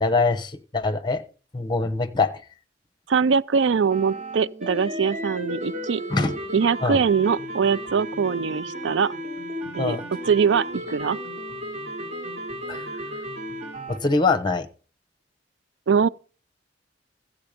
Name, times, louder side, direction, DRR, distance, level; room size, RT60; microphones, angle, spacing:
voice 1, 0.0-1.2 1.5-2.3 6.1-6.4 6.8-7.0 9.8-10.0 12.7-12.8 13.9-14.7, left 3 dB, 25° left, 1.1 m, -23 dB
voice 2, 3.1-6.0 6.5-9.1 9.8-10.0 10.3-11.2 15.9-16.1, right 6 dB, 80° right, 0.4 m, -22 dB
sound 1, 3.9-14.0, equal, 40° right, 4.1 m, -34 dB
14.0 x 7.9 x 5.1 m
head